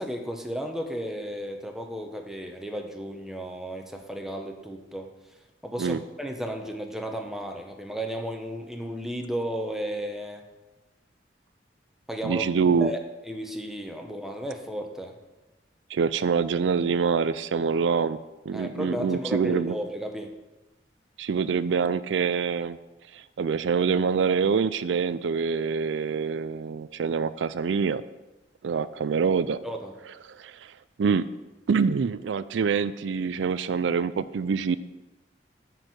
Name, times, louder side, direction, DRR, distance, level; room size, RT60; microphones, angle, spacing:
voice 1, 0.0-5.1 5.6-10.4 12.1-12.4 12.8-13.0 13.3-15.2 18.5-20.3 29.6-29.9, equal, ahead, 3 dB, 0.9 m, -34 dB
voice 2, 12.2-12.9 15.9-18.2 18.5-19.8 21.2-22.8 23.1-28.0 28.6-29.6 30.3-30.7 31.0-31.3 31.7-34.8, right 5 dB, 85° right, 15 dB, 0.4 m, -25 dB
9.6 x 4.6 x 7.8 m, 1.1 s
head